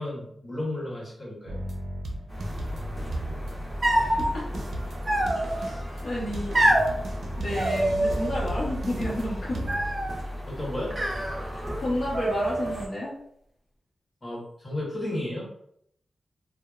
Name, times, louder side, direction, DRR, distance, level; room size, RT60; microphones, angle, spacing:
voice 1, 0.0-1.6 10.5-11.0 14.2-15.5, left 1 dB, 35° left, -5 dB, 1.2 m, -33 dB
sound 1, 1.5-9.9, right 1 dB, 80° right, 0.4 m, -36 dB
sound 2, 2.3-12.9, equal, 5° right, 1.0 m, -36 dB
sound 3, 3.8-4.3 5.1-5.7 6.5-6.9 7.6-8.4 8.7-9.2 9.7-10.2 10.9-11.8 12.1-12.9, right 1 dB, 45° right, 0.7 m, -26 dB
voice 2, 5.3-6.7 7.4-9.7 11.4-13.1, left 1 dB, 65° left, -8 dB, 0.7 m, -31 dB
2.8 x 2.0 x 2.3 m, 0.71 s
cardioid pair, 60°, 0 cm